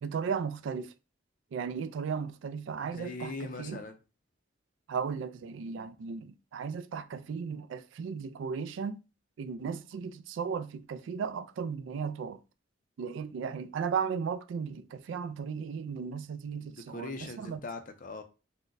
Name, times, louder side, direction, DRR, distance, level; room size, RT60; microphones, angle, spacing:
voice 1, 0.0-0.9 1.5-3.8 4.9-9.0 9.4-12.4 13.0-17.6, right 6 dB, 75° right, 0.3 m, -35 dB
voice 2, 2.8-4.0 16.6-18.2, left 3 dB, 45° left, 0.5 m, -41 dB
2.5 x 2.1 x 3.8 m
head